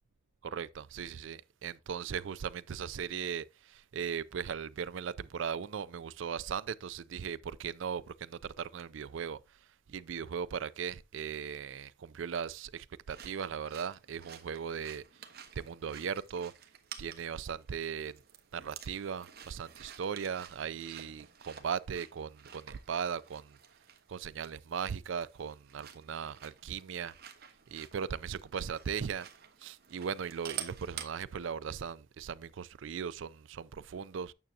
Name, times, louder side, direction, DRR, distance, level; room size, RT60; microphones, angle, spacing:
voice 1, 0.4-9.6 9.9-15.2 15.6-16.5 17.0-18.2 18.5-23.6 24.1-27.1 27.7-29.3 29.6-34.3, right 7 dB, 65° right, 0.4 m, -38 dB
sound 1, 13.1-31.1, right 9 dB, 50° right, 1.1 m, -50 dB
9.3 x 6.4 x 2.7 m
head